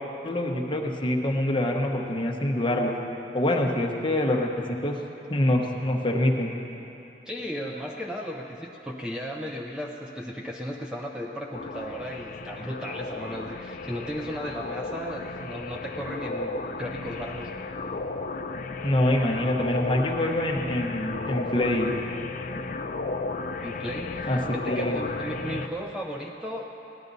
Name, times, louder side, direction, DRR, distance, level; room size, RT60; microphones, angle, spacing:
voice 1, 0.2-2.9 3.3-5.0 5.3-6.5 18.8-21.9 24.3-25.0, left 1 dB, 30° left, 0 dB, 0.9 m, -25 dB
voice 2, 7.3-17.5 23.6-26.7, equal, 5° right, 0 dB, 0.5 m, -35 dB
sound 1, 11.5-25.7, left 3 dB, 50° left, 0.4 m, -34 dB
17.0 x 11.0 x 4.0 m, 3.0 s
head